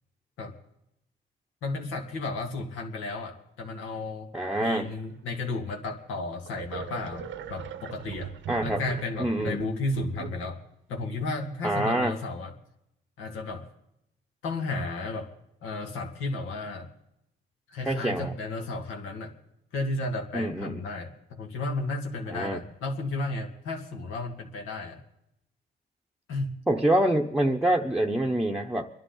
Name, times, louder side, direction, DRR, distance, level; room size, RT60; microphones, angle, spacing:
voice 1, 1.6-4.3 4.6-8.3 8.6-10.6 10.9-12.5 13.2-13.7 14.4-15.3 15.6-16.9 17.7-19.3 19.7-25.0 26.3-26.6, left 2 dB, 85° left, 2 dB, 2.0 m, -33 dB
voice 2, 4.3-5.0 8.5-8.8 9.2-9.7 11.6-12.2 17.8-18.3 20.3-20.8 22.3-22.6 26.7-28.9, right 1 dB, 5° right, 0 dB, 0.8 m, -26 dB
sound 1, 5.8-5.9 6.5-10.7, right 8 dB, 75° right, 0.8 m, -39 dB
27.0 x 11.0 x 3.9 m, 0.83 s
cardioid pair, 90°, 20 cm